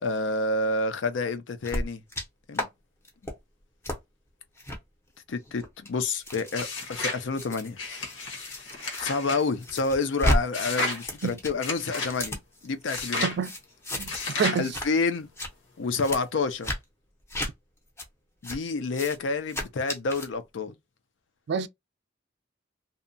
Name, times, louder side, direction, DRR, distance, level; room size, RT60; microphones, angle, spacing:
voice 1, 0.0-2.0 2.5-2.7 5.3-7.8 9.0-13.3 14.5-15.3 15.8-16.7 18.4-20.7, left 3 dB, 70° left, 0.5 m, -29 dB
sound 1, 1.6-2.2 2.5-2.7 3.0-3.3 3.8-4.0 4.6-4.8 5.4-9.0 9.4-10.4 10.7-13.0 13.4-14.3 14.5-14.9 15.2-15.5 16.0-16.2 16.6-16.8 17.3-17.5 18.0-18.1 18.4-18.6 18.9-19.2 19.5-20.3, equal, 15° left, 0.6 m, -32 dB
sound 2, 6.5-7.2 7.8-9.4 10.5-11.0 11.6-12.1 12.9-13.4 14.1-14.6, left 3 dB, 85° left, 1.1 m, -32 dB
voice 2, 14.0-14.8 21.5-21.7, right 6 dB, 65° right, 0.3 m, -28 dB
2.7 x 2.1 x 2.6 m
head